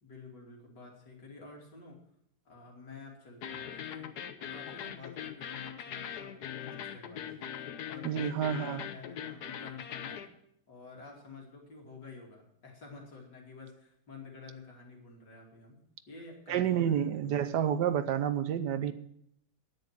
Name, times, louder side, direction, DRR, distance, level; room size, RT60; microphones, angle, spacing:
voice 1, 0.0-2.0 2.5-4.1 4.4-10.3 10.7-15.8 16.1-17.1 17.5-17.6, left 4 dB, 90° left, 0 dB, 3.4 m, -50 dB
sound 1, 3.4-10.3, left 9 dB, 70° left, 1.4 m, -41 dB
voice 2, 8.0-8.9 16.5-18.9, right 9 dB, 80° right, 12 dB, 1.4 m, -29 dB
9.8 x 9.3 x 7.4 m, 0.72 s
omnidirectional pair, 1.8 m